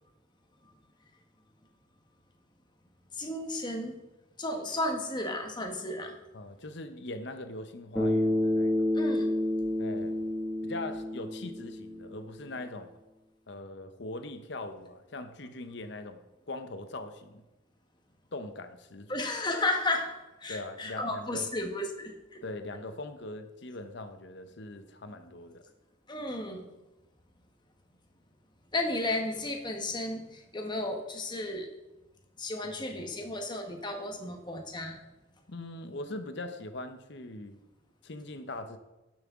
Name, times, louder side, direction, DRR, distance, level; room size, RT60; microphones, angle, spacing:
voice 1, 3.2-4.0 4.4-6.2 8.9-9.3 19.1-22.4 26.1-26.6 28.7-31.7 32.4-35.0, left 2 dB, 25° left, 4 dB, 1.2 m, -33 dB
voice 2, 6.3-8.9 9.8-10.2 10.6-12.9 13.5-16.2 16.5-17.4 18.3-19.1 20.5-21.5 22.4-25.6 32.6-33.3 35.5-37.6 38.0-38.8, left 2 dB, 60° left, 9 dB, 0.8 m, -41 dB
Bass guitar, 8.0-12.3, left 1 dB, 5° left, 1.5 m, -29 dB
11.5 x 7.5 x 3.7 m, 1.0 s
head